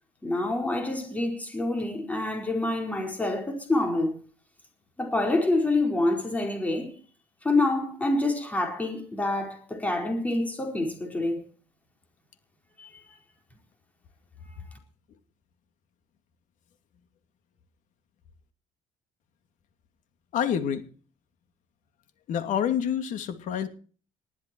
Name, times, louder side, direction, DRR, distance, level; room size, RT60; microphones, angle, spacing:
voice 1, 0.2-4.2 5.0-7.0 7.4-11.4 12.8-12.9, left 2 dB, 10° left, 4.5 m, -27 dB
voice 2, 20.3-20.8 22.3-23.7, left 8 dB, 65° left, 2.6 m, -27 dB
20.0 x 12.5 x 4.5 m
cardioid pair, 170°, 14 cm